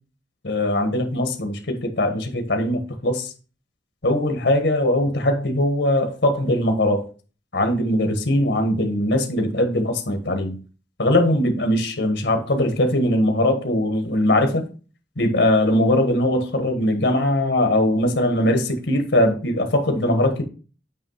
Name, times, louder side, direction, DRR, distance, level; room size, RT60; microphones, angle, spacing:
voice 1, 0.4-3.3 4.0-7.1 7.5-10.6 11.0-14.6 15.2-20.4, left 1 dB, 75° left, 1.5 m, -21 dB
8.5 x 3.2 x 5.7 m
head